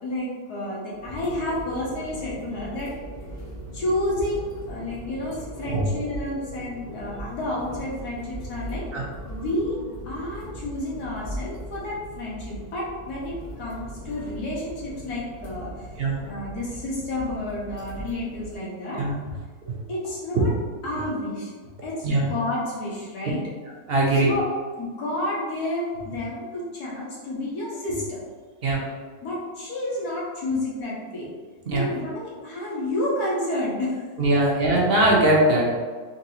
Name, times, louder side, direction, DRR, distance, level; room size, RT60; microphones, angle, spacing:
voice 1, 0.0-2.9 3.7-8.9 9.3-9.8 10.1-15.9 16.3-19.0 19.9-20.5 20.8-21.5 21.8-23.4 24.1-24.5 24.8-28.2 29.2-31.3 31.7-34.0 34.4-34.5, left 1 dB, 75° left, -5 dB, 1.7 m, -30 dB
sound 1, 0.9-18.5, right 1 dB, 35° left, 0.8 m, -39 dB
voice 2, 23.9-24.3 28.6-28.8 31.7-31.9 34.2-35.7, right 2 dB, 50° right, -3 dB, 0.9 m, -20 dB
4.0 x 4.0 x 2.8 m, 1.4 s
omnidirectional pair, 1.7 m